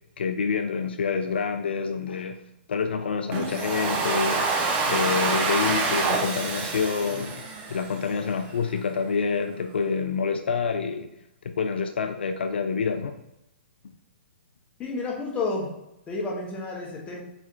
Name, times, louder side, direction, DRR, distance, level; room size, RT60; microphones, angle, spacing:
voice 1, 0.2-2.4 2.7-4.5 4.9-7.4 7.7-11.1 11.4-13.2, left 5 dB, 75° left, 7 dB, 0.4 m, -27 dB
Domestic sounds home sounds, 3.3-8.3, right 3 dB, 30° right, 0.7 m, -27 dB
voice 2, 14.8-15.7 16.1-17.2, left 3 dB, 20° left, -1 dB, 1.2 m, -30 dB
4.1 x 3.1 x 3.8 m, 0.87 s
hypercardioid pair, 130°, 6 cm